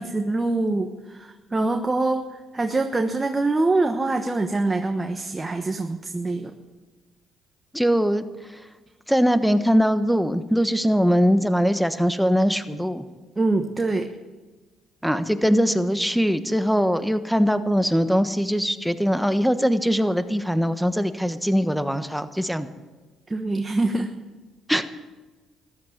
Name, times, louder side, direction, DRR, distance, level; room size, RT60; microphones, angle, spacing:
voice 1, 0.0-2.3 2.5-6.5 13.4-14.1 23.3-24.1, right 2 dB, 25° right, 5 dB, 1.2 m, -24 dB
voice 2, 7.7-8.2 9.1-13.0 15.0-22.7 24.7-24.8, equal, ahead, 10 dB, 1.2 m, -21 dB
14.5 x 11.5 x 8.1 m, 1.3 s
supercardioid pair, 65°, 0 cm